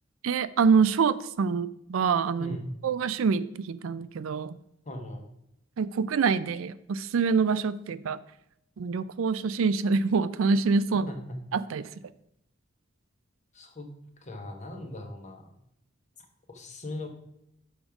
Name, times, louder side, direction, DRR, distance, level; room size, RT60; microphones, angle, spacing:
voice 1, 0.2-2.6 2.8-4.6 5.8-8.2 8.8-11.1 11.5-11.9, right 5 dB, 85° right, 15 dB, 0.4 m, -25 dB
voice 2, 4.8-5.3 11.1-11.4 13.5-13.9 14.2-15.5 16.2-17.1, left 1 dB, 35° left, 4 dB, 1.2 m, -39 dB
6.3 x 5.1 x 5.9 m, 0.79 s
head